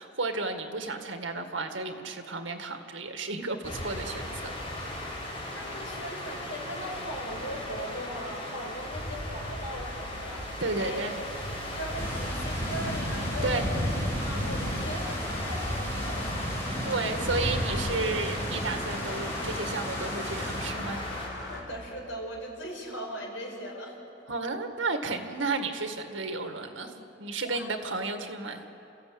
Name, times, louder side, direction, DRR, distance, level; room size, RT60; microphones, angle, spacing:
voice 1, 0.0-4.6 10.6-11.1 13.4-13.6 16.8-21.0 24.3-26.9 27.2-28.6, right 3 dB, 90° right, 6 dB, 2.0 m, -32 dB
sound 1, 3.6-21.3, left 1 dB, 30° left, 4.4 m, -35 dB
voice 2, 5.5-11.0 11.7-13.8 14.2-16.4 21.5-24.0 27.4-27.7, equal, 85° left, -1 dB, 5.8 m, -39 dB
sound 2, 5.6-21.6, left 1 dB, 65° left, 6.2 m, -44 dB
sound 3, 12.0-20.7, equal, 15° left, 4.7 m, -36 dB
29.5 x 14.5 x 8.8 m, 2.9 s
head